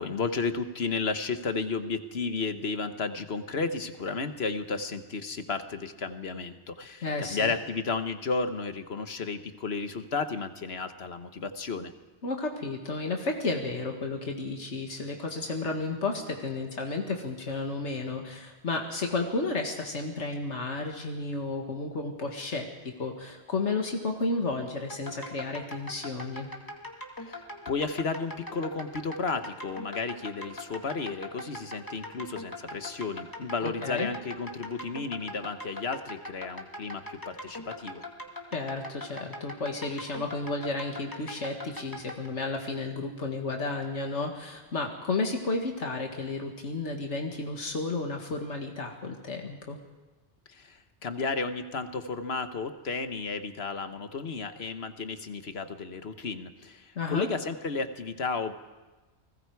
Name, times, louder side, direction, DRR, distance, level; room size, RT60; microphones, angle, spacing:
voice 1, 0.0-11.9 27.2-38.0 50.5-58.5, left 4 dB, 65° left, 9 dB, 1.4 m, -33 dB
voice 2, 7.0-7.5 12.2-26.5 33.6-34.1 38.5-49.8 57.0-57.3, left 3 dB, 90° left, 2 dB, 2.1 m, -32 dB
sound 1, 24.9-42.3, left 1 dB, 20° left, 2.2 m, -41 dB
29.5 x 20.5 x 4.8 m, 1.2 s
omnidirectional pair, 1.2 m